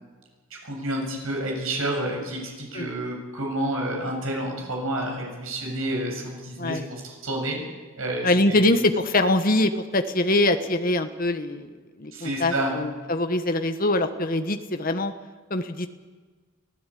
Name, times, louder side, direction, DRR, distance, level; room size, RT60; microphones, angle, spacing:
voice 1, 0.6-7.6 8.0-8.7 12.1-12.8, right 1 dB, 70° right, 0 dB, 7.4 m, -29 dB
voice 2, 8.2-11.7 12.0-15.1 15.5-15.9, left 2 dB, 40° left, 8 dB, 1.3 m, -23 dB
24.5 x 16.0 x 8.5 m, 1.4 s
head